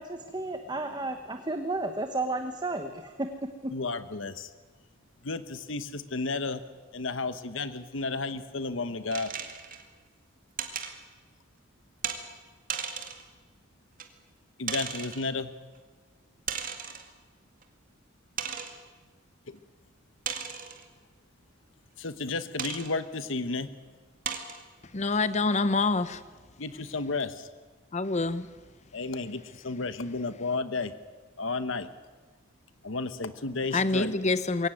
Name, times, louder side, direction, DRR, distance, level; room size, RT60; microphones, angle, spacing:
voice 1, 0.0-3.3 3.6-3.7, right 2 dB, 20° right, 1.1 m, -32 dB
voice 2, 3.7-4.5 5.2-6.6 6.9-9.3 14.6-15.5 19.5-19.6 22.0-23.7 26.6-27.5 28.9-30.9 31.4-31.9 32.8-34.1, left 3 dB, 70° left, 1.1 m, -32 dB
sound 1, 9.1-9.8 10.6-10.9 12.0-12.2 12.7-13.2 14.0-14.1 14.7-15.3 16.5-17.1 17.6-17.7 18.4-18.8 20.3-20.8 22.6-22.9 23.6-23.7 24.2-24.6, right 7 dB, 45° right, 2.1 m, -35 dB
voice 3, 24.9-26.2 27.9-28.5 33.7-34.7, left 3 dB, 35° left, 0.8 m, -26 dB
22.0 x 17.5 x 9.2 m
head